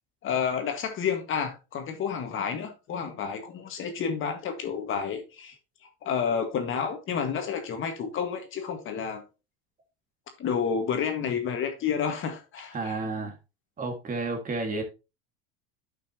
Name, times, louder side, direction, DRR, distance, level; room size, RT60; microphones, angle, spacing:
voice 1, 0.2-5.6 6.0-9.2 10.4-13.0, left 7 dB, 40° left, 1.8 m, -30 dB
voice 2, 12.7-13.3 13.8-14.8, right 3 dB, 25° right, 1.9 m, -31 dB
10.5 x 5.8 x 2.9 m
supercardioid pair, 120°, 30 cm